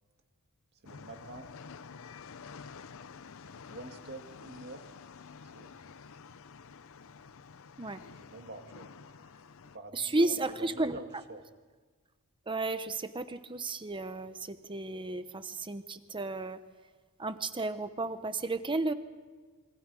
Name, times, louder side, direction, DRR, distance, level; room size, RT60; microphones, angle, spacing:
voice 1, 0.8-1.5 3.7-4.9 5.4-5.8 8.2-8.9 9.7-11.4, right 2 dB, 50° right, 5 dB, 2.1 m, -46 dB
sound 1, 0.9-9.8, left 5 dB, 65° left, 0.7 m, -49 dB
voice 2, 9.9-11.0 12.5-16.6 17.2-18.9, right 2 dB, 20° right, 11 dB, 1.0 m, -33 dB
27.0 x 24.0 x 4.9 m, 1.4 s
head